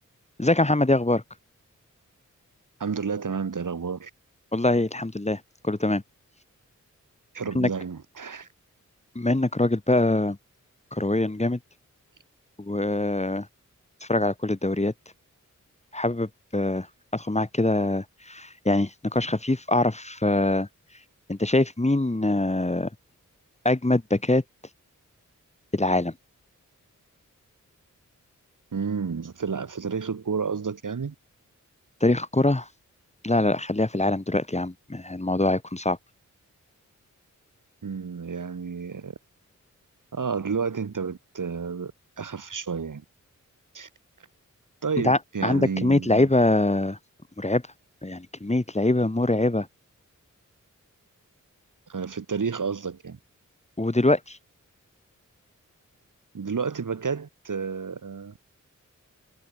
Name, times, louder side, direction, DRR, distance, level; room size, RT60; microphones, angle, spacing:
voice 1, 0.4-1.2 4.5-6.0 7.5-7.7 9.2-10.4 10.9-11.6 12.6-13.5 14.0-14.9 15.9-16.9 17.1-20.7 21.3-22.9 23.6-24.4 25.7-26.1 32.0-32.7 33.2-36.0 45.0-47.0 47.4-47.6 48.0-49.7 53.8-54.4, left 2 dB, 20° left, 4.1 m, -23 dB
voice 2, 2.8-4.1 7.3-8.5 28.7-31.1 37.8-39.1 40.1-41.9 42.2-43.0 43.7-43.9 44.8-46.3 51.9-53.2 56.3-58.4, right 5 dB, 80° right, 3.9 m, -30 dB
wide cardioid pair, 90°, 31 cm